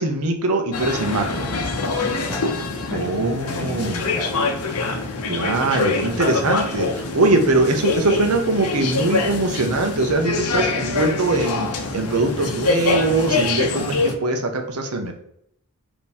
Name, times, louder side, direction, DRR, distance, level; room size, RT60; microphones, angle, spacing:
voice 1, 0.0-1.5 2.9-4.1 5.3-15.1, right 2 dB, 80° right, 4 dB, 0.8 m, -22 dB
sound 1, 0.7-14.1, left 3 dB, 85° left, 0.7 m, -25 dB
voice 2, 2.0-3.1 3.5-4.4 5.9-6.9, left 1 dB, 10° left, 2 dB, 0.5 m, -34 dB
3.5 x 3.0 x 4.2 m, 0.74 s
head